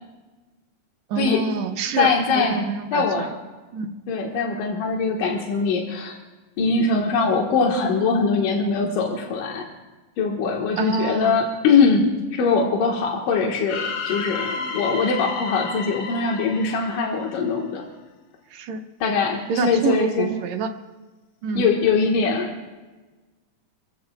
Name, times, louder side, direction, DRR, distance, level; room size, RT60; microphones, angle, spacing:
voice 1, 1.1-3.3 3.7-3.9 6.8-7.0 10.8-11.4 18.5-18.8 19.5-20.7 21.4-21.7, right 5 dB, 70° right, 6 dB, 1.9 m, -26 dB
voice 2, 2.0-2.6 2.9-3.4 4.1-6.1 6.6-9.7 10.2-17.9 19.0-20.3 21.6-22.5, left 4 dB, 85° left, 0 dB, 2.9 m, -22 dB
sound 1, 13.7-17.7, left 5 dB, 65° left, 1.2 m, -31 dB
27.0 x 14.5 x 2.2 m, 1.2 s
omnidirectional pair, 3.7 m